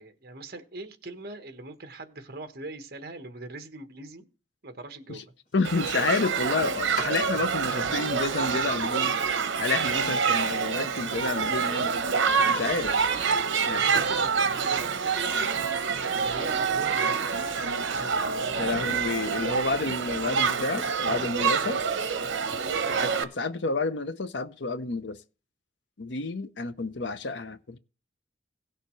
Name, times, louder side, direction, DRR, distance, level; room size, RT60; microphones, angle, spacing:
voice 1, 0.0-4.3 4.6-5.3 7.3-7.5 13.2-17.3 17.9-18.7 21.0-21.9, right 2 dB, 50° right, 1.2 m, -42 dB
Domestic sounds home sounds, 5.4-8.0 8.3-9.1 9.4-9.5 10.0-10.1 10.4-14.1, left 1 dB, 50° left, 4.3 m, -46 dB
voice 2, 5.5-9.2 9.6-11.9 12.5-13.0 13.7-13.8 18.6-21.8 22.9-25.2 26.0-27.8, left 3 dB, 70° left, 0.7 m, -30 dB
Shout / Human group actions, 5.6-23.2, right 5 dB, 85° right, 0.8 m, -27 dB
17.0 x 6.8 x 3.1 m
head